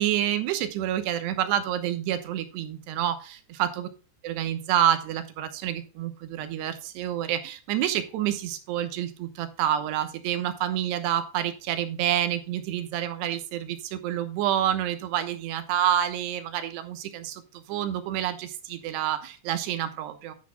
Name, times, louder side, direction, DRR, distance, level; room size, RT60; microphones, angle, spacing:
voice 1, 0.0-3.2 3.6-3.9 4.2-20.3, right 11 dB, 75° right, 9 dB, 3.0 m, -28 dB
11.0 x 9.9 x 2.3 m, 0.34 s
omnidirectional pair, 5.1 m